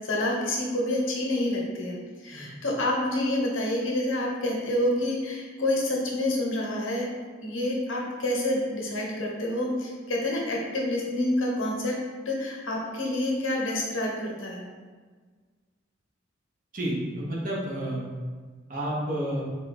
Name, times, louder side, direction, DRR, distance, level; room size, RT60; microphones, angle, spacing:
voice 1, 0.0-2.0 2.2-7.1 7.4-12.0 12.3-14.6, left 1 dB, 85° left, -1 dB, 0.8 m, -28 dB
voice 2, 16.7-18.0 18.7-19.4, right 1 dB, 45° right, -4 dB, 0.9 m, -30 dB
3.9 x 2.2 x 4.0 m, 1.5 s
head